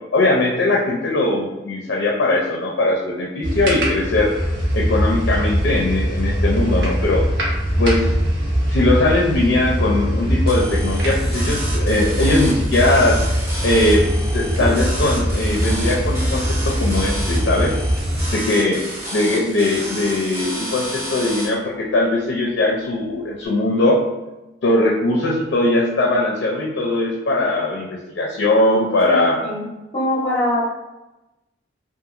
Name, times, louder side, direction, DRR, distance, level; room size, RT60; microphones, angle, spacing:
voice 1, 0.1-4.3 4.7-7.2 7.8-8.1 8.7-13.2 13.6-14.1 14.3-17.7 18.3-18.8 19.1-24.0 24.6-29.4, left 2 dB, 80° left, -2 dB, 0.4 m, -20 dB
sound 1, 3.4-18.3, equal, 65° right, 0.8 m, -21 dB
sound 2, 10.5-21.5, right 1 dB, 15° right, 0.6 m, -31 dB
voice 2, 29.1-29.7 29.9-30.6, left 1 dB, 30° left, -8 dB, 0.6 m, -22 dB
2.8 x 2.4 x 2.4 m, 1.0 s
head